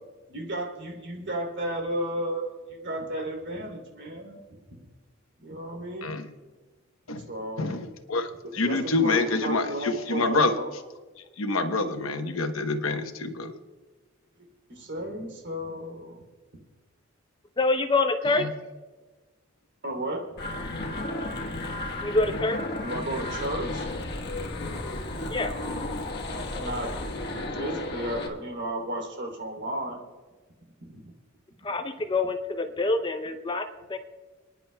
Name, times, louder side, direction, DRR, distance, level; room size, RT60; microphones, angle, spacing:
voice 1, 0.3-4.4 5.4-6.2 7.3-7.7 8.6-10.7 14.7-16.2 19.8-20.2 21.3-21.4 22.8-23.9 26.6-26.9 27.4-30.0 30.9-31.0, right 1 dB, 60° right, 1 dB, 3.0 m, -33 dB
voice 2, 7.6-10.5 11.4-13.5 18.2-18.5, left 3 dB, 80° left, 7 dB, 1.0 m, -27 dB
voice 3, 17.6-18.5 22.0-22.6 25.3-25.5 31.6-34.0, left 3 dB, 25° left, 7 dB, 0.6 m, -26 dB
sound 1, 20.4-28.3, left 2 dB, 55° left, 1.3 m, -33 dB
29.5 x 10.0 x 2.3 m, 1.3 s
head